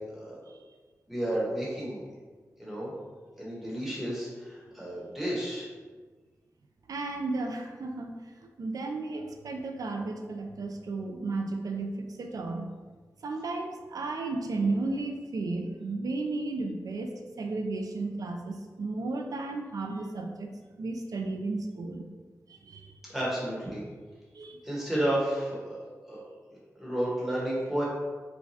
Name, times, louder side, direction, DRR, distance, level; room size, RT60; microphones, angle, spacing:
voice 1, 0.1-0.4 1.1-2.0 2.6-2.9 3.3-5.7 23.1-23.8 24.6-25.8 26.1-26.2 26.8-27.9, right 1 dB, 5° right, -6 dB, 1.2 m, -31 dB
voice 2, 6.9-8.2 8.6-12.7 13.2-20.5 20.8-22.1 22.5-22.9 24.3-24.6, right 3 dB, 75° right, 3 dB, 0.4 m, -33 dB
4.5 x 2.2 x 2.7 m, 1.4 s
wide cardioid pair, 90°, 6 cm